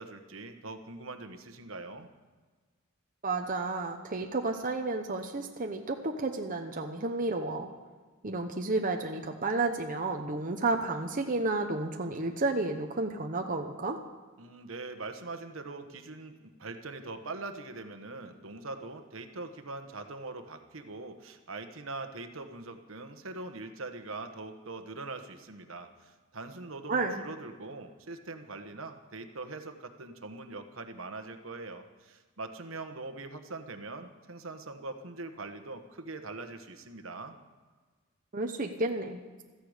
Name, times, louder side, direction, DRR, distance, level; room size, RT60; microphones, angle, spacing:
voice 1, 0.0-2.1 14.4-37.4, right 3 dB, 70° right, 7 dB, 1.2 m, -42 dB
voice 2, 3.2-7.7 8.2-14.0 26.9-27.2 38.3-39.2, right 3 dB, 40° right, 3 dB, 0.9 m, -31 dB
16.0 x 14.0 x 5.1 m, 1.4 s
head